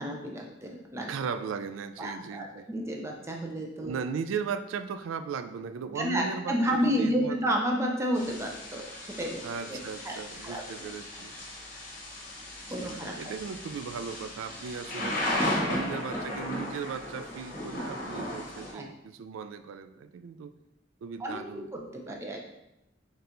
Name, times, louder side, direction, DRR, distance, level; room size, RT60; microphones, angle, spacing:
voice 1, 0.0-1.1 2.0-4.0 5.9-9.4 9.7-9.8 10.0-10.2 10.4-10.6 12.7-13.2 18.7-18.9 21.2-22.5, equal, 15° right, 0 dB, 0.5 m, -31 dB
voice 2, 1.1-2.7 3.8-7.4 9.4-11.3 12.8-15.2 15.7-20.5 21.0-21.7 22.1-22.2, right 6 dB, 90° right, 11 dB, 0.3 m, -37 dB
Thunder / Rain, 8.1-18.7, left 1 dB, 45° left, 1.0 m, -35 dB
4.2 x 3.3 x 2.5 m, 0.88 s
head